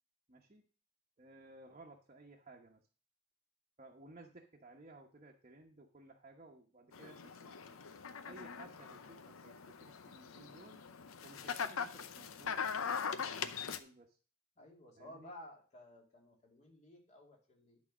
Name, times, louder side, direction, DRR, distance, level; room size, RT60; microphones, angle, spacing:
voice 1, 0.3-0.6 1.2-2.8 3.8-7.6 8.3-10.8 11.2-14.2 15.0-15.3, right 2 dB, 35° right, -1 dB, 1.1 m, -58 dB
sound 1, 6.9-13.8, left 6 dB, 90° left, 0.7 m, -41 dB
voice 2, 14.6-17.8, left 1 dB, 35° left, 0 dB, 2.5 m, -55 dB
11.0 x 4.2 x 6.1 m, 0.38 s
head